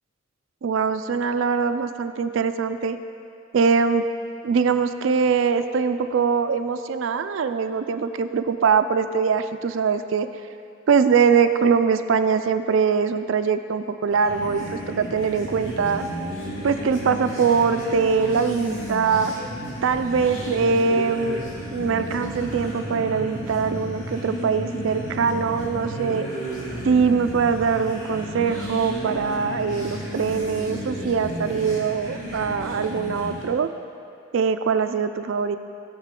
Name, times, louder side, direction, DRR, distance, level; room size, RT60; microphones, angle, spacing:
voice 1, 0.6-3.0 3.5-4.0 4.4-10.3 10.9-16.0 16.6-19.3 19.8-21.4 21.7-26.3 26.8-33.7 34.3-35.6, right 5 dB, 70° right, 10 dB, 0.4 m, -22 dB
sound 1, 14.1-33.6, equal, 70° left, 2.4 m, -33 dB
15.0 x 6.6 x 3.7 m, 2.7 s
head